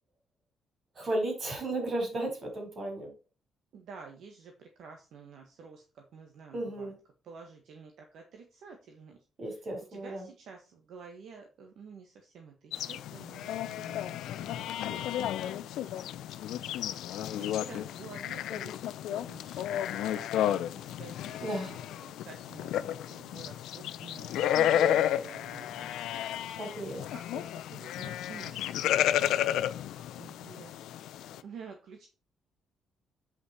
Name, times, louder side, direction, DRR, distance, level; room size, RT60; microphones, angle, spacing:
voice 1, 0.9-3.1 6.5-7.0 9.4-10.3 14.8-15.1 21.4-21.9 24.5-25.0 26.6-27.0, right 1 dB, 40° right, 3 dB, 4.5 m, -34 dB
voice 2, 3.7-6.9 7.3-9.2 9.9-14.9 15.2-15.5 17.1-19.6 20.2-21.5 22.3-25.9 27.3-29.3 30.2-30.7 31.4-32.1, right 5 dB, 75° right, 3 dB, 1.5 m, -50 dB
sound 1, 12.7-31.4, left 11 dB, 85° left, 0.5 m, -32 dB
8.3 x 5.6 x 4.3 m, 0.33 s
cardioid pair, 90°, 0 cm